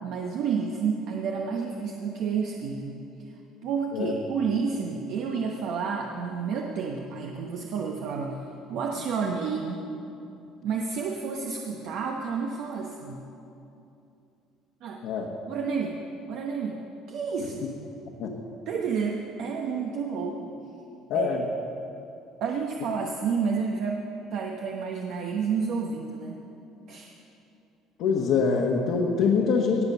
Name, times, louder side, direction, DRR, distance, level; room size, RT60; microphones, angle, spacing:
voice 1, 0.0-3.0 3.6-8.4 8.7-9.8 10.6-13.2 14.8-15.0 15.5-16.0 16.3-16.8 17.1-17.7 18.7-20.6 21.1-21.4 22.4-24.0 24.3-26.4 26.9-27.2, right 5 dB, 65° right, 1 dB, 1.0 m, -30 dB
voice 2, 21.1-21.4 28.0-29.8, left 5 dB, 65° left, -1 dB, 1.3 m, -24 dB
18.5 x 7.2 x 6.9 m, 2.7 s
cardioid pair, 130°, 0 cm